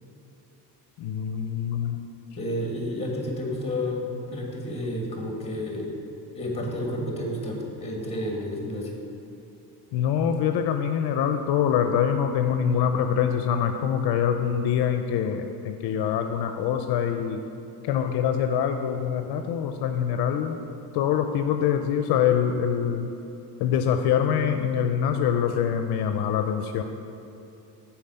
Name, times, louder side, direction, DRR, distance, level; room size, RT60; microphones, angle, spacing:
voice 1, 1.0-2.1 9.9-17.4 17.8-20.6 20.9-23.1 23.6-26.8, left 8 dB, 70° left, 6 dB, 0.5 m, -24 dB
voice 2, 2.4-5.9 6.3-8.9, left 1 dB, 15° left, 0 dB, 1.6 m, -30 dB
7.1 x 4.7 x 6.7 m, 2.8 s
cardioid pair, 125°, 41 cm